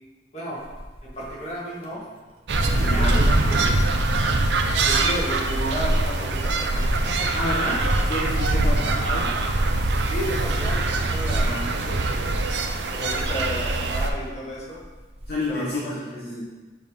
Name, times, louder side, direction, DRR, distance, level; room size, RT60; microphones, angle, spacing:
sound 1, 0.6-15.8, equal, 35° right, 0.8 m, -42 dB
voice 1, 1.0-2.1 2.7-3.8 4.8-7.3 8.5-8.8 10.1-12.4 12.9-14.8 15.5-15.9, equal, 40° left, -6 dB, 1.7 m, -33 dB
sound 2, 2.5-14.1, right 2 dB, 70° right, 0.6 m, -23 dB
voice 2, 2.8-3.3 7.3-9.4 11.4-11.8 15.3-16.4, left 1 dB, 55° left, -6 dB, 0.9 m, -29 dB
6.9 x 3.4 x 5.1 m, 1.3 s
head